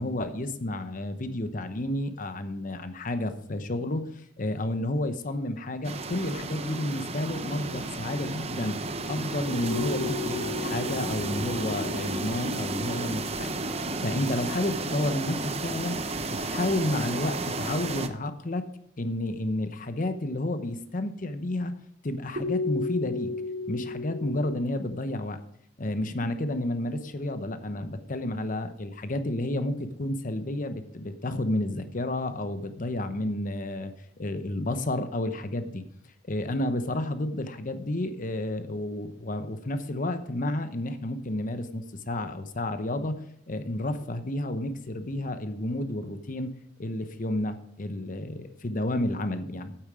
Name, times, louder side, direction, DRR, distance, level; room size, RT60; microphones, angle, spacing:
voice 1, 0.0-13.6 14.0-16.0 16.3-18.6 19.0-21.7 22.0-23.3 23.7-25.4 25.8-35.8 36.2-46.5 46.8-49.7, left 1 dB, 45° left, 10 dB, 0.9 m, -31 dB
sound 1, 5.8-18.1, right 2 dB, 35° right, 0.7 m, -32 dB
sound 2, 9.6-13.7 22.4-24.5, left 3 dB, 85° right, 2.8 m, -35 dB
8.9 x 8.8 x 4.9 m, 0.70 s
head